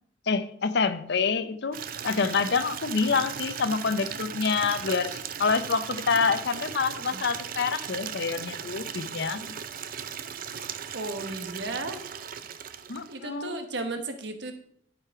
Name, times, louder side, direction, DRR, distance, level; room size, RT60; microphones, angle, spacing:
voice 1, 0.3-9.5 12.9-13.6, left 5 dB, 60° left, 12 dB, 0.7 m, -27 dB
Water tap faucet / Liquid, 1.7-13.3, right 8 dB, 50° right, 0.5 m, -37 dB
voice 2, 10.9-12.0 13.1-14.5, right 2 dB, 65° right, 6 dB, 1.3 m, -34 dB
11.0 x 5.0 x 4.7 m, 0.67 s
head